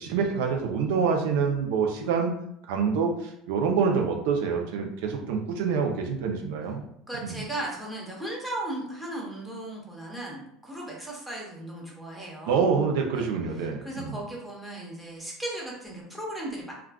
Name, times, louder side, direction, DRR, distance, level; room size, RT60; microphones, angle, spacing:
voice 1, 0.0-2.3 2.7-6.8 7.2-7.4 12.5-14.2, right 5 dB, 80° right, 2 dB, 0.5 m, -26 dB
voice 2, 7.1-12.6 13.1-13.3 13.6-16.7, right 1 dB, 5° right, -4 dB, 1.0 m, -36 dB
2.3 x 2.3 x 3.5 m, 0.73 s
supercardioid pair, 120°, 0 cm